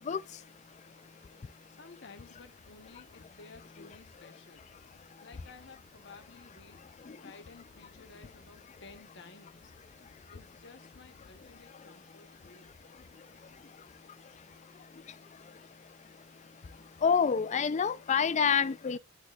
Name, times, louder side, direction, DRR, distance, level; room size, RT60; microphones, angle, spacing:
voice 1, 1.5-6.8 7.2-9.8 10.3-12.7, left 4 dB, 65° left, 1.1 m, -54 dB
voice 2, 17.0-19.0, left 6 dB, 40° left, 0.4 m, -27 dB
11.0 x 4.2 x 2.4 m
head